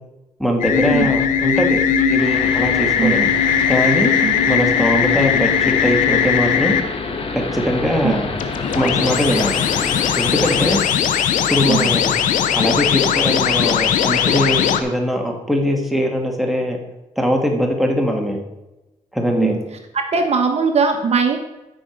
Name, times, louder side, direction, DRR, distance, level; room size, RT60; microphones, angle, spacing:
voice 1, 0.4-3.2 3.7-4.1 4.5-6.7 7.3-8.3 8.7-9.6 10.2-10.8 11.5-12.1 12.5-16.8 17.2-18.4 19.1-19.5, equal, ahead, 1 dB, 2.1 m, -21 dB
sound 1, 0.6-6.8 8.4-14.8, left 8 dB, 80° left, 0.8 m, -18 dB
sound 2, 2.2-10.8, left 3 dB, 45° left, 1.8 m, -28 dB
voice 2, 20.1-21.4, right 5 dB, 55° right, 5 dB, 1.2 m, -19 dB
13.0 x 5.3 x 5.2 m, 1.0 s
cardioid pair, 75°, 13 cm